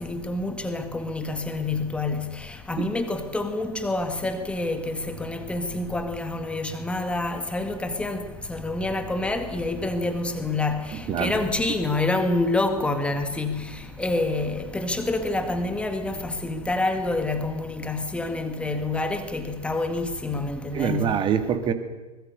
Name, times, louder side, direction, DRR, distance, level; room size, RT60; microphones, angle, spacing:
voice 1, 0.0-21.1, left 2 dB, 5° left, 2.0 m, -27 dB
voice 2, 10.9-11.3 20.7-21.7, right 8 dB, 25° right, 2.2 m, -25 dB
24.0 x 21.5 x 6.8 m
figure-of-eight pair, 105°, 21 cm